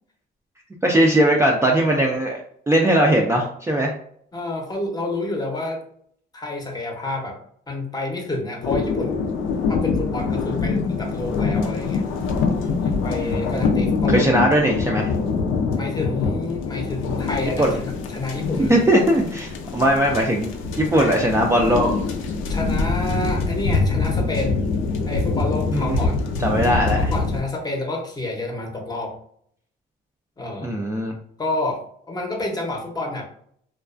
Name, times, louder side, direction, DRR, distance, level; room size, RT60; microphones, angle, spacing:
voice 1, 0.8-2.4 2.7-3.9 13.2-13.7 14.1-15.1 17.6-17.7 18.7-20.5 20.8-21.9 25.7-27.1 30.6-31.1, right 1 dB, 15° right, -1 dB, 0.3 m, -19 dB
voice 2, 4.3-5.8 6.3-7.4 7.7-9.3 9.7-12.0 12.8-14.3 15.7-18.8 22.5-24.6 25.1-26.2 26.9-29.2 30.4-30.7 31.4-33.2, left 2 dB, 20° left, 1 dB, 0.7 m, -29 dB
sound 1, 8.6-27.4, left 4 dB, 85° left, 0.4 m, -24 dB
2.3 x 2.2 x 2.4 m, 0.64 s
cardioid pair, 90°, 20 cm